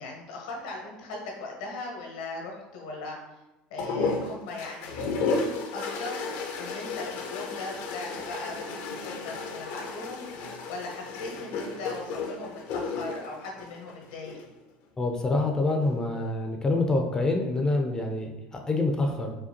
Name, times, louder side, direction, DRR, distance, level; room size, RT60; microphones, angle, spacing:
voice 1, 0.0-3.2 3.7-5.0 5.7-10.2 10.7-14.4, left 3 dB, 85° left, -1 dB, 1.1 m, -39 dB
sound 1, 3.8-14.5 15.6-16.2, left 4 dB, 70° left, 0.6 m, -33 dB
voice 2, 15.0-19.4, left 2 dB, 20° left, 2 dB, 0.5 m, -26 dB
4.9 x 2.2 x 2.9 m, 1.0 s
supercardioid pair, 105°, 4 cm